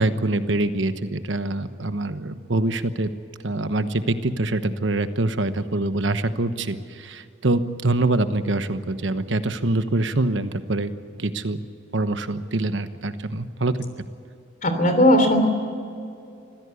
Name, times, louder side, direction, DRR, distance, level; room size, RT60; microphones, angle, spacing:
voice 1, 0.0-3.1 3.4-10.9 11.2-11.6 11.9-13.8, right 2 dB, 70° right, 10 dB, 1.1 m, -24 dB
voice 2, 14.6-15.5, equal, 40° left, 7 dB, 3.1 m, -17 dB
25.0 x 16.0 x 8.4 m, 2.5 s
head